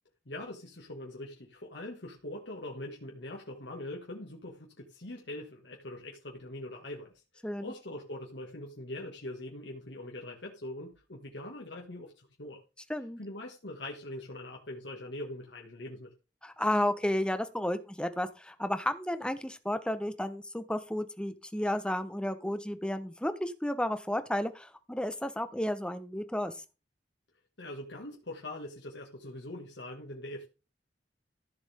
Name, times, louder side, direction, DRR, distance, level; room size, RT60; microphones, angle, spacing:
voice 1, 0.3-12.6 13.2-16.1 27.6-30.5, left 1 dB, 80° left, 1.9 m, -42 dB
voice 2, 16.4-26.5, left 1 dB, 5° left, 1.0 m, -32 dB
14.5 x 7.1 x 3.6 m
head